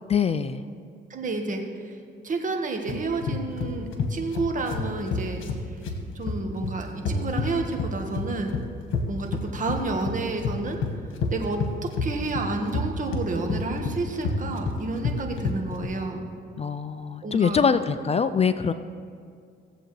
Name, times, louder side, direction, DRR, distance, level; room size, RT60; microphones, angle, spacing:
voice 1, 0.1-0.6 16.6-18.7, left 6 dB, 30° left, 11 dB, 0.4 m, -23 dB
voice 2, 1.1-1.9 2.2-5.4 6.1-8.5 9.1-10.8 11.3-16.2 17.2-17.7, right 3 dB, 40° right, 3 dB, 1.5 m, -30 dB
sound 1, 2.9-15.9, left 4 dB, 80° left, 1.3 m, -29 dB
17.5 x 7.8 x 3.2 m, 2.2 s
cardioid pair, 90°, 20 cm